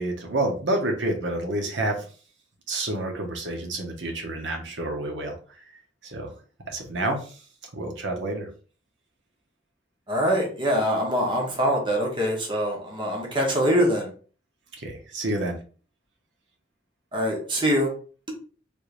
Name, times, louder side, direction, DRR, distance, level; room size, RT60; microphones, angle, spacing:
voice 1, 0.0-2.1 2.7-5.6 6.0-6.3 6.7-7.4 7.7-8.5 14.8-15.6, right 1 dB, 85° right, 3 dB, 0.9 m, -29 dB
voice 2, 10.1-14.1 17.1-17.9, equal, 25° right, -2 dB, 1.0 m, -24 dB
3.5 x 3.1 x 2.5 m, 0.39 s
head